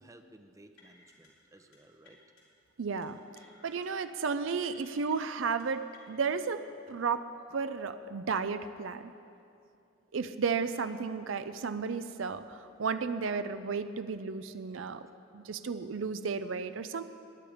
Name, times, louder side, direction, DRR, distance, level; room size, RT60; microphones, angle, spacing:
voice 1, 0.0-2.2 12.5-12.6, right 1 dB, 15° right, 7 dB, 0.7 m, -57 dB
sound 1, 0.8-1.3 1.6-1.8 2.1-2.4 3.0-3.9 4.1-4.4 4.6-5.2 5.6-6.5, left 3 dB, 85° left, 4.1 m, -59 dB
voice 2, 2.8-3.2 3.6-7.2 7.5-9.1 10.1-15.0 15.3-17.0, right 5 dB, 75° right, 11 dB, 0.5 m, -33 dB
20.0 x 10.5 x 5.0 m, 2.5 s
head